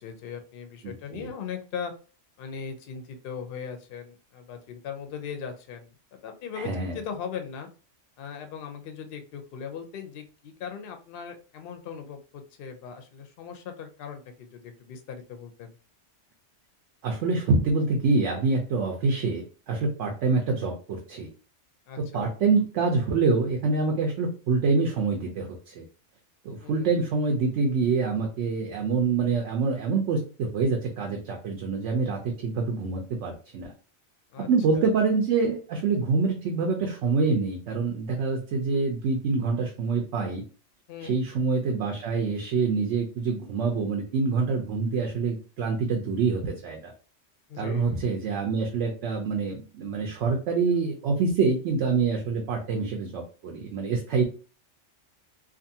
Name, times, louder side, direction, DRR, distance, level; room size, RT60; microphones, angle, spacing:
voice 1, 0.0-1.9 2.4-7.7 8.2-15.7 21.9-22.3 26.6-27.0 34.3-34.5 34.8-34.9 40.9-41.2 47.5-48.0, left 7 dB, 60° left, 6 dB, 0.7 m, -39 dB
voice 2, 0.8-1.3 6.6-7.0 17.0-21.3 22.1-25.8 26.4-33.7 34.4-40.4 41.0-46.9 47.6-54.2, right 4 dB, 75° right, 2 dB, 0.9 m, -26 dB
2.5 x 2.5 x 2.7 m, 0.36 s
omnidirectional pair, 1.2 m